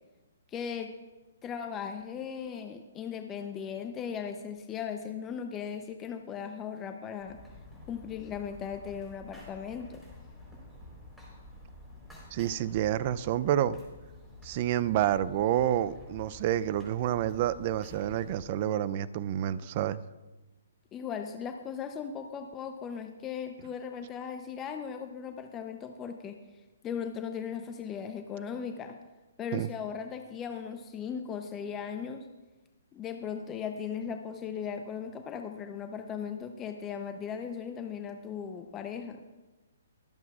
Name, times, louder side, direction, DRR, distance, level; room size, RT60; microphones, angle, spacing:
voice 1, 0.5-0.9 1.4-7.4 7.9-10.0 20.9-26.4 26.8-29.0 29.4-32.3 32.9-39.2, left 7 dB, 20° left, 6 dB, 0.6 m, -37 dB
sound 1, 7.2-18.5, left 2 dB, ahead, 3.8 m, -50 dB
voice 2, 12.3-13.8 14.4-20.0 29.5-29.7, right 11 dB, 40° right, 16 dB, 0.4 m, -29 dB
24.0 x 8.0 x 2.4 m, 1.2 s
hypercardioid pair, 145°, 0 cm